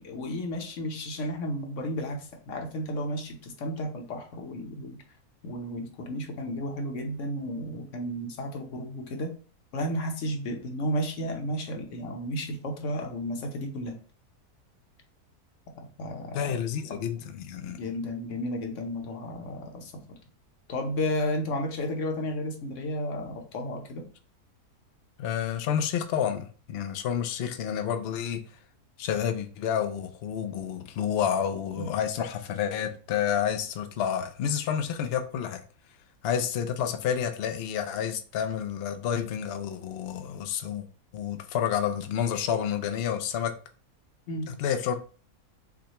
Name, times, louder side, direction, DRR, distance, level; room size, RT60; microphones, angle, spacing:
voice 1, 0.0-5.0 5.4-9.3 9.7-13.9 16.0-16.6 16.9-17.0 17.6-20.2 20.7-24.0 31.8-31.9 44.3-44.5, equal, 60° left, 1.1 m, -33 dB
voice 2, 16.3-17.8 25.2-28.4 29.0-35.6 36.2-40.9 41.1-43.5 44.5-45.0, left 8 dB, 85° left, 0.5 m, -29 dB
6.2 x 2.2 x 2.9 m
omnidirectional pair, 1.6 m